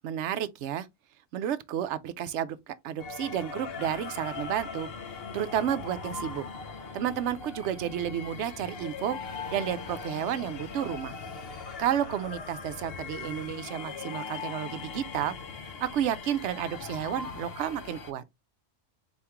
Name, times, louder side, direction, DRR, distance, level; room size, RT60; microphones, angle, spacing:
voice 1, 0.0-0.9 1.3-6.4 6.9-11.2 11.8-15.4 15.6-18.2, right 10 dB, 70° right, 0.8 m, -31 dB
sound 1, 3.0-18.1, left 5 dB, 55° left, 0.9 m, -40 dB
4.2 x 3.5 x 2.9 m
omnidirectional pair, 1.3 m